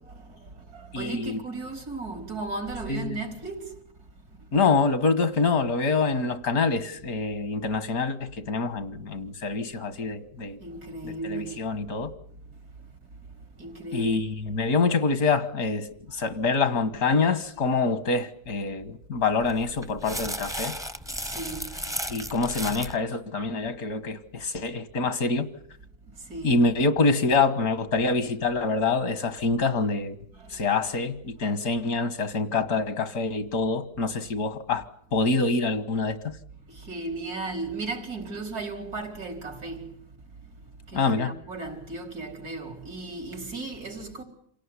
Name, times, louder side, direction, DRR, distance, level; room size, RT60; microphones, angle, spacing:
voice 1, 0.0-3.8 4.4-4.5 10.6-11.6 12.6-12.9 13.3-14.2 16.1-16.3 21.1-22.3 26.1-26.6 30.3-30.7 31.3-31.5 36.5-40.2 40.6-44.2, right 3 dB, 90° right, 5.0 m, -36 dB
voice 2, 0.9-1.4 2.9-3.2 4.5-10.6 11.0-12.1 13.9-15.9 16.1-20.7 22.1-25.5 26.4-30.2 30.5-34.8 35.1-36.2 40.9-41.3, left 3 dB, 75° left, 1.9 m, -25 dB
sound 1, 19.4-23.0, equal, 5° right, 0.6 m, -35 dB
27.5 x 17.5 x 9.8 m
omnidirectional pair, 1.6 m